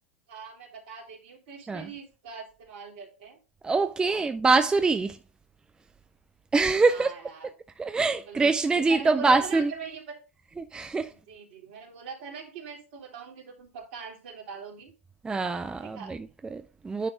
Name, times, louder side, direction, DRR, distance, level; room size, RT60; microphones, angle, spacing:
voice 1, 0.3-3.4 4.0-4.2 6.9-7.5 8.1-10.2 11.1-14.9 15.8-16.2, right 6 dB, 60° right, 3.0 m, -42 dB
voice 2, 3.6-5.2 6.5-7.1 7.8-9.7 10.6-11.1 15.2-17.1, right 3 dB, 10° right, 0.5 m, -24 dB
9.8 x 3.4 x 5.0 m
figure-of-eight pair, 90°, 7 cm